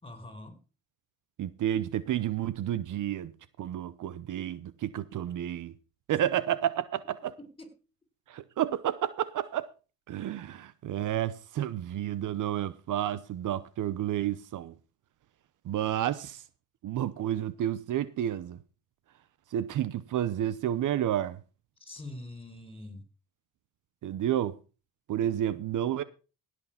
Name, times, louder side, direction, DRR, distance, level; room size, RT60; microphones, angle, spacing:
voice 1, 0.0-0.6 7.4-7.7 21.8-23.0, left 1 dB, 15° left, 4.2 m, -44 dB
voice 2, 1.4-3.3 3.6-5.7 6.1-7.4 8.3-9.7 10.1-14.7 15.6-16.4 16.8-18.6 19.5-21.4 24.0-24.6 25.1-26.0, right 11 dB, 60° right, 0.9 m, -30 dB
16.5 x 6.3 x 5.8 m
supercardioid pair, 75°, 35 cm